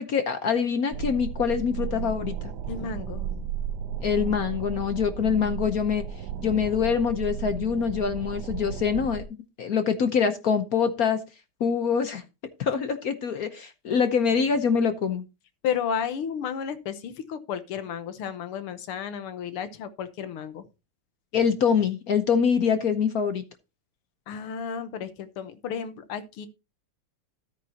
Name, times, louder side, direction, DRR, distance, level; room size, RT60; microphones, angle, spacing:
voice 1, 0.0-2.5 4.0-6.0 6.4-9.2 9.6-11.2 11.6-12.2 12.6-15.2 21.3-23.4, left 6 dB, 60° left, 1.0 m, -24 dB
sound 1, 0.9-9.2, right 8 dB, 65° right, 1.0 m, -34 dB
voice 2, 2.6-3.5 15.6-20.6 24.3-26.5, left 7 dB, 85° left, 1.9 m, -33 dB
13.0 x 9.1 x 2.8 m
omnidirectional pair, 2.4 m